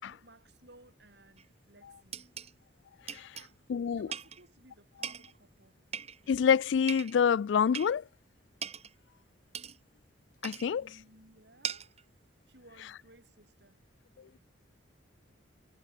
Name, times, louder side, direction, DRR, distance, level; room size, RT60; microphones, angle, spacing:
voice 1, 0.0-2.2 3.3-3.6 4.0-5.8 10.8-12.0 12.5-13.8, right 1 dB, 55° right, 7.9 m, -59 dB
sound 1, 1.4-1.5 2.1-2.5 3.1-3.5 4.1-4.4 5.0-5.3 5.9-6.4 6.9-7.2 7.7-8.0 8.6-8.9 9.5-9.8 10.4-10.7 11.6-12.0, right 7 dB, 30° right, 2.5 m, -40 dB
voice 2, 3.7-4.1 6.3-8.1 10.4-10.9 14.2-14.4, left 7 dB, 70° left, 0.3 m, -27 dB
head